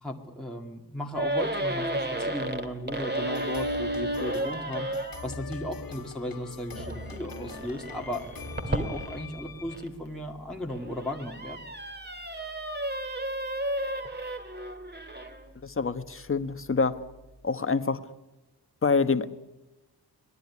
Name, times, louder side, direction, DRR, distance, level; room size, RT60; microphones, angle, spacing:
voice 1, 0.0-11.7, left 1 dB, ahead, -1 dB, 2.0 m, -36 dB
sound 1, 1.1-5.3 6.7-9.9 10.5-15.5, right 1 dB, 25° right, 2.5 m, -33 dB
sound 2, 2.9-9.8, left 4 dB, 60° left, 2.0 m, -43 dB
voice 2, 15.6-17.0 17.4-18.0 18.8-19.3, left 4 dB, 35° left, 11 dB, 1.2 m, -26 dB
25.0 x 19.0 x 9.6 m, 1.0 s
wide cardioid pair, 160°, 39 cm